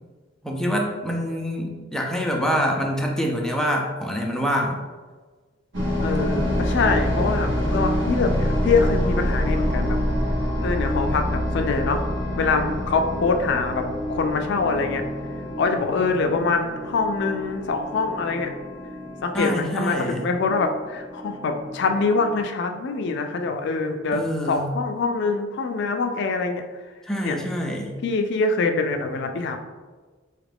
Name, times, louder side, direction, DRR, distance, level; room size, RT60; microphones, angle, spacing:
voice 1, 0.4-4.8 19.3-20.3 24.1-24.7 27.1-27.9, equal, 5° left, -1 dB, 0.4 m, -25 dB
sound 1, 5.7-22.4, equal, 75° right, 1.0 m, -27 dB
voice 2, 6.0-10.0 10.6-12.1 12.4-15.0 15.6-18.5 19.2-26.6 27.2-27.4 28.0-29.6, left 4 dB, 65° left, 6 dB, 0.4 m, -24 dB
4.2 x 2.4 x 3.4 m, 1.4 s
head